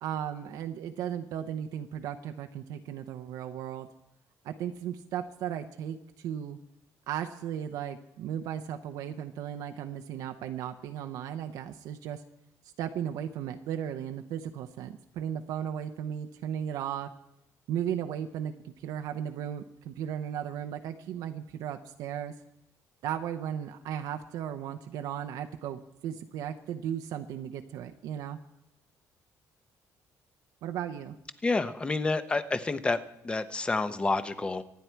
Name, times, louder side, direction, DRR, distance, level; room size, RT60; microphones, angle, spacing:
voice 1, 0.0-3.9 4.4-6.6 7.1-12.2 12.8-17.1 17.7-22.3 23.0-28.4 30.6-31.1, right 9 dB, 85° right, 6 dB, 0.8 m, -36 dB
voice 2, 31.4-34.6, left 3 dB, 15° left, 12 dB, 0.7 m, -29 dB
25.0 x 9.6 x 4.6 m, 0.83 s
cardioid pair, 150°, 6 cm